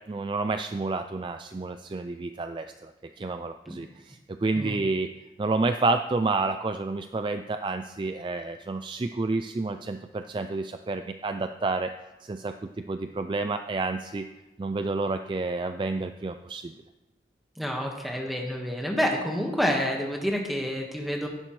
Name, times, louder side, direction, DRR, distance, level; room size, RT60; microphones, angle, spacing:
voice 1, 0.1-2.9 3.2-5.1 5.4-11.9 12.2-14.3 14.6-16.7, right 3 dB, 25° right, 8 dB, 0.3 m, -29 dB
voice 2, 17.6-21.3, equal, ahead, 0 dB, 1.5 m, -28 dB
16.0 x 11.0 x 3.2 m, 1.1 s
head